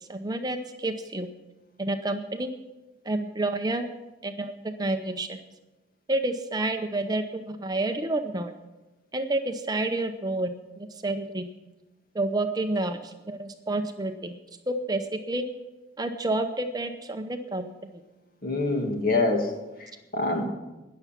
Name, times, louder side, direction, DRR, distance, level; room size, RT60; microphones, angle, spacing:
voice 1, 0.1-1.3 1.8-2.5 3.0-3.9 4.2-5.4 6.1-8.5 9.1-10.5 11.0-11.5 12.1-14.3 14.7-15.4 16.0-17.7, right 2 dB, 20° right, 7 dB, 0.7 m, -29 dB
voice 2, 18.4-20.4, left 2 dB, 50° left, 3 dB, 2.1 m, -26 dB
19.0 x 7.0 x 5.9 m, 1.0 s
head